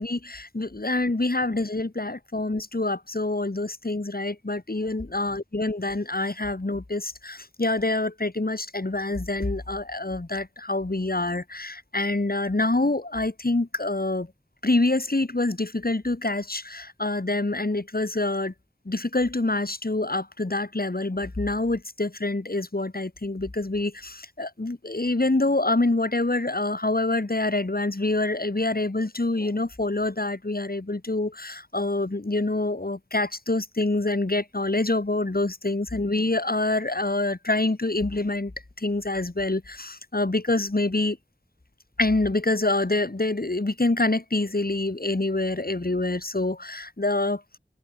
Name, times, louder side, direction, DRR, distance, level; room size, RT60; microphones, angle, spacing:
voice 1, 0.0-5.2 5.7-14.3 14.6-18.5 18.9-38.5 38.8-41.2 42.0-47.4, left 2 dB, 60° left, 5.4 m, -26 dB
wide cardioid pair, 45°, 17 cm